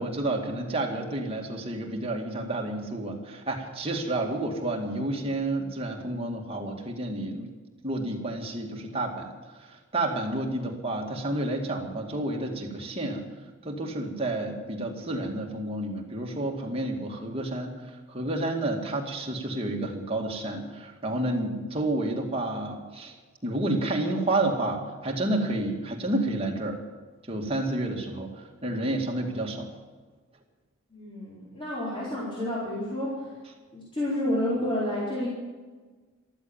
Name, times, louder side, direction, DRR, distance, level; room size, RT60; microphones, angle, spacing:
voice 1, 0.0-7.5 7.8-13.2 13.6-23.1 23.4-26.8 27.3-29.7, right 1 dB, 25° right, 1 dB, 2.2 m, -30 dB
voice 2, 30.9-33.3 33.7-35.3, left 1 dB, 25° left, -7 dB, 4.5 m, -30 dB
14.5 x 13.5 x 7.2 m, 1.4 s
head